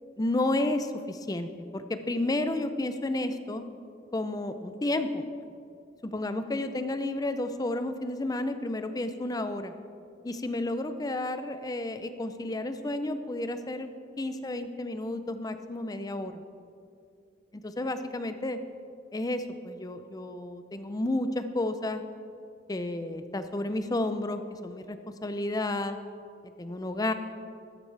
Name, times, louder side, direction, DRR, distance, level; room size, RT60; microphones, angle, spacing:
voice 1, 0.2-3.6 4.1-5.3 6.0-9.7 10.2-13.9 14.2-16.4 17.6-18.6 19.1-22.0 22.7-26.0 26.6-27.1, left 2 dB, 20° left, 9 dB, 0.5 m, -31 dB
13.5 x 11.0 x 3.3 m, 2.4 s
head